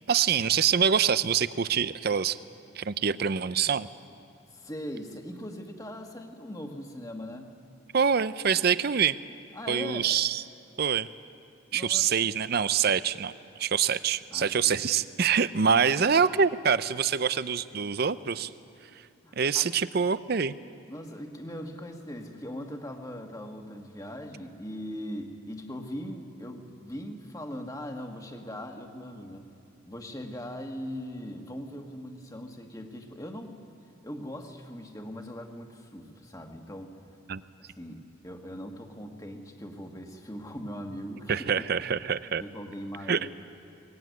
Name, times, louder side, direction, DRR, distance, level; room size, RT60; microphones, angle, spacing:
voice 1, 0.0-2.4 2.7-3.9 7.9-9.2 9.7-10.4 10.8-11.1 11.7-13.3 13.6-18.5 19.3-20.5 37.3-37.4 41.3-42.4 43.1-43.3, right 7 dB, 50° right, 15 dB, 0.5 m, -25 dB
voice 2, 4.5-7.6 9.5-10.1 11.7-12.3 14.3-14.8 19.2-19.7 20.9-29.5 29.9-33.6 34.0-37.0 37.6-41.8 42.4-43.3, equal, 15° left, 3 dB, 1.6 m, -40 dB
22.0 x 19.5 x 9.4 m, 2.5 s
head